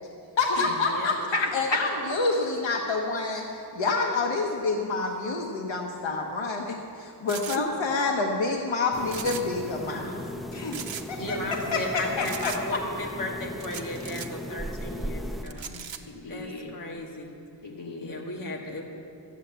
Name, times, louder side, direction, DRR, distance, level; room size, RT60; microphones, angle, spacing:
voice 1, 0.4-1.2 1.5-10.1 11.1-11.4 11.7-12.5, left 3 dB, 90° left, 1 dB, 1.2 m, -28 dB
voice 2, 1.3-1.8 7.6-7.7 10.5-10.8 15.7-16.7 17.6-18.2, left 2 dB, 75° left, 0 dB, 2.0 m, -32 dB
sound 1, 7.3-7.6 9.1-9.6 9.9-10.0 10.7-11.1 12.2-12.6 13.6-14.3 15.4-16.0, right 8 dB, 85° right, 0.9 m, -38 dB
sound 2, 8.9-15.4, equal, ahead, 0.5 m, -37 dB
voice 3, 9.9-10.5 11.1-15.6 16.3-17.4 18.0-18.8, left 1 dB, 45° left, -1 dB, 1.8 m, -36 dB
13.0 x 8.2 x 8.9 m, 2.6 s
wide cardioid pair, 145°, 44 cm